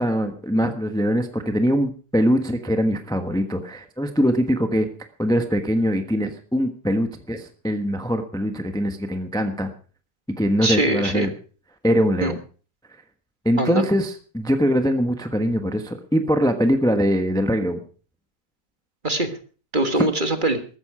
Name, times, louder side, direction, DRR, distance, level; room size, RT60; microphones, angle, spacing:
voice 1, 0.0-4.9 5.2-9.7 10.4-11.3 11.8-12.4 13.4-17.8, equal, 5° left, 7 dB, 1.0 m, -22 dB
voice 2, 10.6-11.3 12.2-12.3 13.6-13.8 19.0-19.4 19.7-20.6, right 2 dB, 30° right, 7 dB, 1.6 m, -22 dB
14.0 x 13.5 x 4.8 m, 0.39 s
omnidirectional pair, 1.8 m